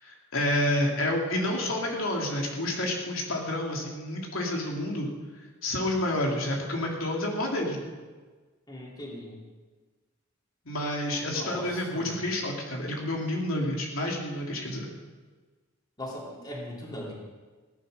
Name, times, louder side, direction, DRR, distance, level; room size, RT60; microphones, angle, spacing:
voice 1, 0.0-5.1 5.6-7.9 10.6-14.9, left 1 dB, 75° left, 0 dB, 2.8 m, -29 dB
voice 2, 8.7-9.4 11.2-12.1 16.0-17.1, left 1 dB, 20° left, -3 dB, 3.0 m, -39 dB
17.5 x 10.5 x 6.6 m, 1.4 s
head